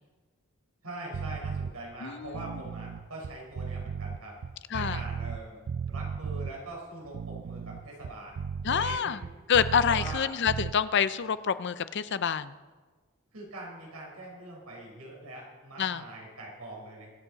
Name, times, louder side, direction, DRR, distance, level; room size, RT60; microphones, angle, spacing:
voice 1, 0.8-4.4 4.7-5.6 5.9-9.3 9.8-10.3 13.3-17.1, right 1 dB, 80° right, -2 dB, 4.6 m, -43 dB
sound 1, 1.1-1.7 2.2-5.4 5.7-6.5 7.0-10.2 10.5-10.7, right 6 dB, 55° right, 0.4 m, -35 dB
voice 2, 2.0-2.3 4.7-5.0 8.6-9.2 9.5-12.5 15.8-16.0, left 7 dB, 50° left, 14 dB, 0.5 m, -27 dB
24.0 x 8.0 x 4.1 m, 1.4 s
head